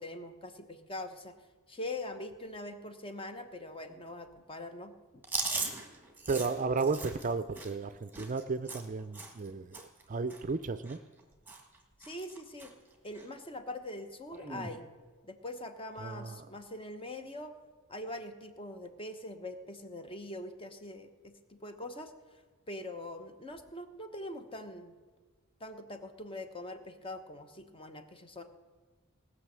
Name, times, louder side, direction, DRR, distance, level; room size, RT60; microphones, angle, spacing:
voice 1, 0.0-1.4 1.7-4.9 12.0-12.7 13.0-14.9 15.2-17.5 17.9-22.1 22.7-25.0 25.6-28.4, left 1 dB, 25° left, 7 dB, 1.0 m, -43 dB
Chewing mastication, 5.2-9.5 9.7-10.0 10.3-11.2 11.5-11.8 12.0-12.7 13.1-13.3 14.3-14.7, right 3 dB, 10° right, 1.6 m, -39 dB
voice 2, 6.3-9.8 10.1-11.0 16.0-16.3, right 4 dB, 35° right, 12 dB, 0.4 m, -33 dB
19.0 x 6.3 x 7.5 m, 1.4 s
head